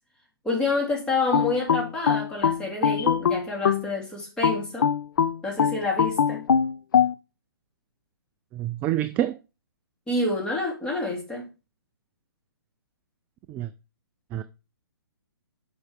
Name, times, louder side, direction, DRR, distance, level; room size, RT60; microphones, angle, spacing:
voice 1, 0.4-4.9 5.4-6.4 10.1-11.5, left 2 dB, 5° left, 3.0 m, -28 dB
sound 1, 1.3-3.9 4.4-7.1, left 7 dB, 55° left, 0.6 m, -22 dB
voice 2, 8.5-9.4 13.5-13.7 14.3-14.4, right 12 dB, 15° right, 0.3 m, -27 dB
7.1 x 5.8 x 5.0 m
figure-of-eight pair, 135°, 13 cm